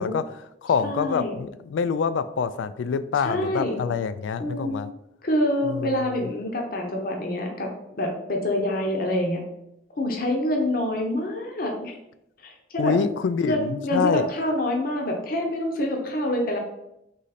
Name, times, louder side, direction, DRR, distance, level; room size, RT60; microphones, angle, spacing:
voice 1, 0.0-4.9 5.6-6.2 12.8-14.3, left 6 dB, 85° left, 13 dB, 0.3 m, -26 dB
voice 2, 0.8-1.3 3.2-3.8 4.4-4.7 5.2-7.7 8.0-9.4 10.0-11.9 12.4-12.9 13.4-16.6, left 1 dB, 50° left, 1 dB, 0.8 m, -26 dB
3.9 x 3.1 x 4.0 m, 0.84 s
head